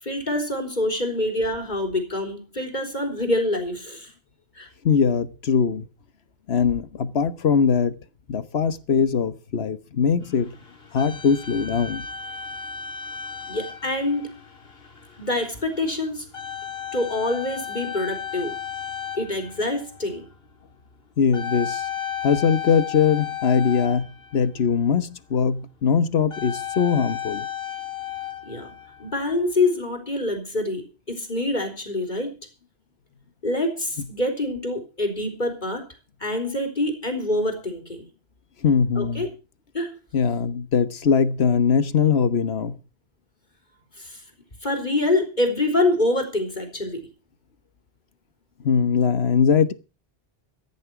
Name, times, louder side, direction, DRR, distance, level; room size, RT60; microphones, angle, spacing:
voice 1, 0.0-4.1 4.6-4.7 13.5-14.4 15.2-16.2 16.9-18.6 19.2-20.2 28.5-28.7 29.0-32.3 33.4-35.8 36.2-38.0 39.0-39.3 39.7-40.0 44.0-44.2 44.6-47.0, left 2 dB, 50° left, 4.1 m, -26 dB
voice 2, 4.8-5.9 6.5-8.0 8.3-10.5 10.9-12.0 21.2-21.8 22.2-27.5 38.6-39.3 40.1-42.8 48.6-49.7, left 6 dB, 85° left, 1.4 m, -21 dB
sound 1, 10.2-24.7 26.2-29.5, left 8 dB, 70° left, 2.4 m, -35 dB
14.5 x 10.5 x 6.0 m
omnidirectional pair, 1.0 m